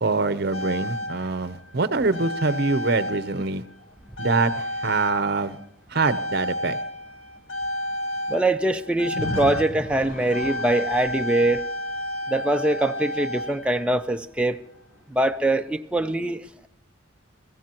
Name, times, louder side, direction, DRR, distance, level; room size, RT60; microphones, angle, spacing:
voice 1, 0.0-3.6 4.2-5.6 5.9-6.8, right 3 dB, 55° right, 0.7 m, -24 dB
sound 1, 0.5-3.8 4.2-14.2 15.2-15.3, left 1 dB, 85° left, 1.3 m, -32 dB
voice 2, 8.3-11.6 12.3-14.6 15.1-16.7, right 1 dB, 5° right, 0.5 m, -23 dB
22.5 x 15.5 x 3.0 m
head